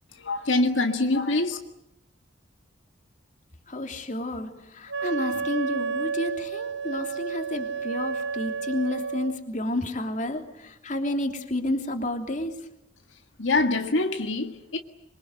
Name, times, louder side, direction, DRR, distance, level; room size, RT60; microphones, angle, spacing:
voice 1, 0.1-1.6 13.4-14.8, left 2 dB, 85° left, 1.8 m, -24 dB
voice 2, 3.7-12.6, left 1 dB, 40° left, 3.0 m, -30 dB
Wind instrument woodwind instrument, 4.9-9.4, right 5 dB, 60° right, 1.1 m, -31 dB
26.0 x 24.0 x 8.0 m
head